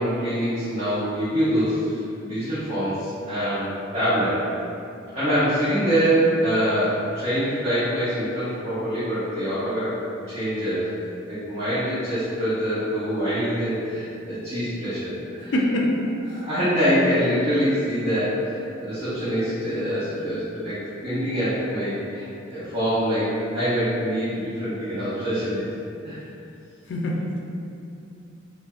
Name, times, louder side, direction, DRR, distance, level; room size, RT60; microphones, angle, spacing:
voice 1, 0.0-4.4 5.1-10.0 10.3-11.0 11.3-15.5 16.3-18.4 18.8-25.7 26.0-26.2, equal, 30° right, -16 dB, 0.8 m, -25 dB
voice 2, 15.5-15.9 26.9-27.4, left 1 dB, 60° left, -1 dB, 0.4 m, -23 dB
3.2 x 2.0 x 2.4 m, 2.6 s
head